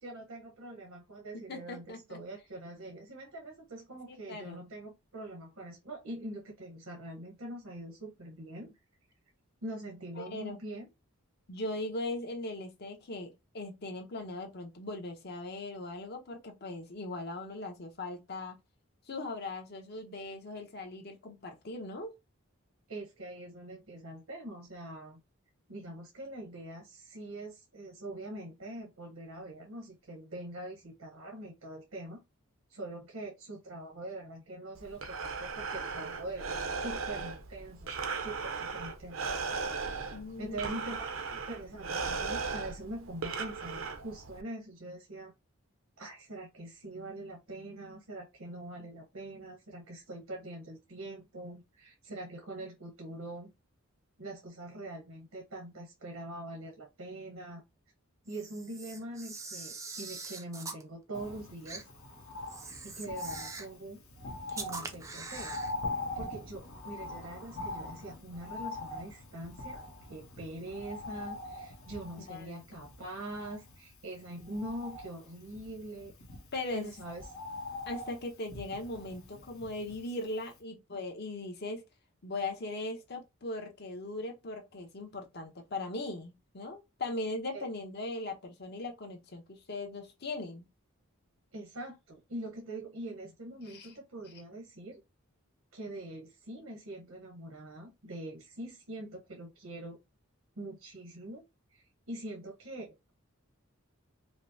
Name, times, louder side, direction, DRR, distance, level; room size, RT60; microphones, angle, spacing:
voice 1, 0.0-8.7 9.6-10.9 22.9-25.2 25.7-32.2 32.7-37.9 38.2-39.3 40.4-45.3 46.0-53.5 54.2-57.6 58.2-61.9 62.8-64.0 64.5-65.6 66.2-69.8 70.1-76.1 76.7-77.3 87.5-87.6 91.5-95.0 95.7-100.0 100.6-101.4 101.7-103.1, right 1 dB, 85° right, 1.0 m, -43 dB
voice 2, 1.3-2.2 4.1-4.6 10.2-10.6 11.5-18.6 19.1-22.1 40.1-40.7 72.3-72.6 76.5-76.9 77.9-81.8 82.2-90.6 93.7-93.9, left 2 dB, 50° left, 0.8 m, -39 dB
Breathing, 34.8-44.4, right 4 dB, 65° right, 0.6 m, -37 dB
Camera, 58.3-60.8 61.7-61.8 62.5-63.8 64.5-65.7, right 4 dB, 15° right, 0.4 m, -43 dB
Bird, 61.1-80.2 80.6-80.7, left 2 dB, 80° left, 1.1 m, -43 dB
5.1 x 2.0 x 2.7 m
head